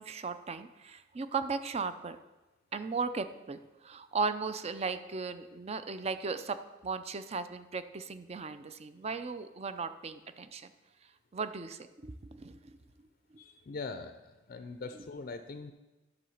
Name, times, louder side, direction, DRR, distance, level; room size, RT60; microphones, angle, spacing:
voice 1, 0.0-2.2 2.7-10.7 11.3-12.8, right 4 dB, 35° right, 11 dB, 0.5 m, -37 dB
voice 2, 13.4-15.7, left 3 dB, 45° left, 9 dB, 0.5 m, -42 dB
10.5 x 4.0 x 7.1 m, 1.1 s
head